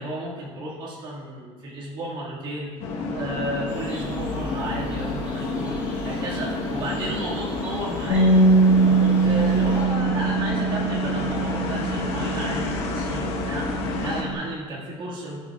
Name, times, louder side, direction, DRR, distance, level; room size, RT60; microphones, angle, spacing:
voice 1, 0.0-2.7 3.1-8.4 8.8-13.7 14.0-15.4, right 1 dB, 40° right, -4 dB, 1.9 m, -33 dB
sound 1, 2.8-14.2, left 3 dB, 60° left, 1.1 m, -29 dB
sound 2, 3.7-9.9, equal, 15° right, 1.9 m, -44 dB
Bass guitar, 8.1-14.3, right 3 dB, 85° left, 1.7 m, -22 dB
12.0 x 6.5 x 2.4 m, 1.6 s
cardioid pair, 165°, 12 cm